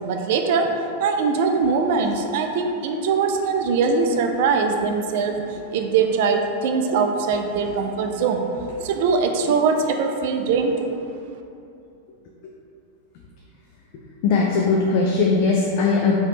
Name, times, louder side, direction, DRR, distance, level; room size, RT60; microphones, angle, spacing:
voice 1, 0.0-8.5 8.8-10.9, right 5 dB, 50° right, 4 dB, 0.3 m, -22 dB
voice 2, 14.2-16.2, left 4 dB, 45° left, -2 dB, 0.3 m, -19 dB
4.1 x 2.7 x 3.0 m, 2.6 s
figure-of-eight pair, 90°, 0 cm